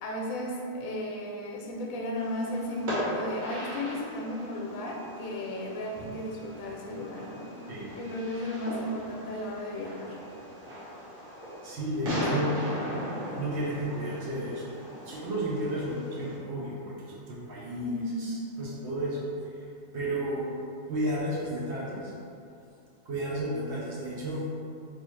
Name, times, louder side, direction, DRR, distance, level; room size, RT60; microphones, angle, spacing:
voice 1, 0.0-7.5 7.9-10.2 17.8-18.3, left 1 dB, 85° left, -1 dB, 1.0 m, -35 dB
Fireworks, 2.2-16.4, equal, 80° right, 1.5 m, -38 dB
voice 2, 11.6-12.5 13.3-14.7 15.1-19.7 19.9-20.5 20.9-22.1 23.0-24.4, right 1 dB, 60° right, -5 dB, 0.9 m, -33 dB
3.5 x 2.7 x 3.1 m, 2.5 s
omnidirectional pair, 1.4 m